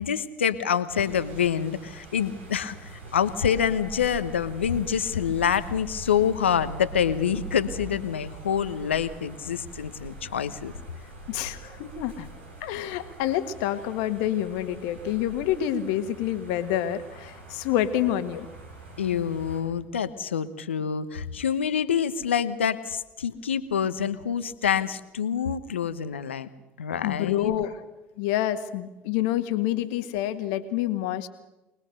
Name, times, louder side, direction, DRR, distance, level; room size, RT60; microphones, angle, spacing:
voice 1, 0.0-10.7 19.0-26.5 26.8-27.5, left 8 dB, 85° left, 13 dB, 1.0 m, -26 dB
sound 1, 0.9-19.6, right 3 dB, 80° right, 4.8 m, -43 dB
voice 2, 11.3-12.3 12.6-18.5 26.9-27.7 28.2-31.3, left 12 dB, 65° left, 10 dB, 1.7 m, -27 dB
24.0 x 20.0 x 6.7 m, 1.0 s
hypercardioid pair, 65°, 6 cm